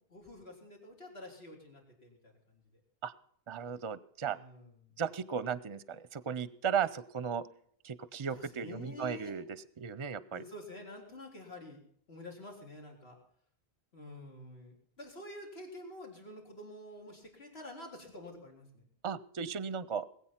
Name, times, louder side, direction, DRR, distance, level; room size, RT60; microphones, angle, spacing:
voice 1, 0.1-2.6 4.3-5.0 8.3-9.4 10.3-11.8 12.1-13.2 13.9-18.9, left 1 dB, 85° left, 0 dB, 4.0 m, -48 dB
voice 2, 3.5-4.4 5.0-7.5 7.8-10.5 19.0-20.1, right 7 dB, 35° right, 18 dB, 0.6 m, -36 dB
20.5 x 8.5 x 5.8 m, 0.65 s
omnidirectional pair, 1.0 m